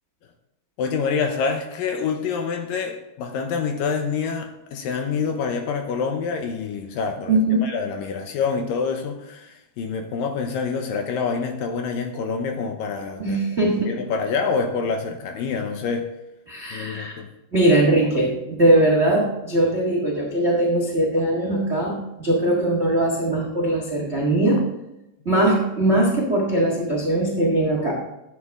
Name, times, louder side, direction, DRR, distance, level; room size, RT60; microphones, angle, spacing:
voice 1, 0.8-16.1 16.7-17.3, left 5 dB, 75° left, 5 dB, 2.2 m, -27 dB
voice 2, 7.3-7.7 13.2-13.9 16.5-17.1 17.5-24.7 25.2-27.9, right 1 dB, 85° right, 0 dB, 0.6 m, -20 dB
12.0 x 8.5 x 3.6 m, 0.90 s
omnidirectional pair, 4.6 m